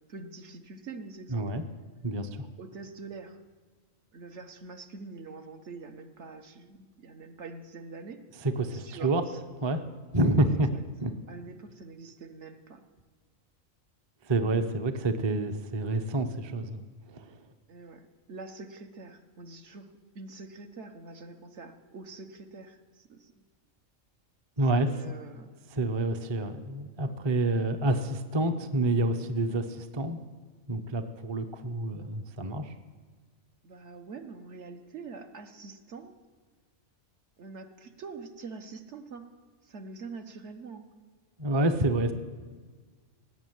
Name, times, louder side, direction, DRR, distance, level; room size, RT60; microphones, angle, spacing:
voice 1, 0.1-1.5 2.6-3.4 4.1-8.2 8.7-9.4 10.5-10.8 11.3-12.8 17.7-19.9 20.1-23.4 24.7-25.5 33.6-36.2 37.4-39.3 39.6-40.9, right 4 dB, 60° right, 6 dB, 1.3 m, -45 dB
voice 2, 1.3-1.6 2.0-2.5 8.4-9.2 9.6-9.8 10.1-10.7 11.0-11.1 14.2-16.8 17.1-17.4 24.6-24.9 25.7-30.2 30.7-32.7 41.4-42.1, right 1 dB, 25° right, 7 dB, 0.6 m, -28 dB
17.5 x 7.2 x 9.3 m, 1.5 s
omnidirectional pair, 1.4 m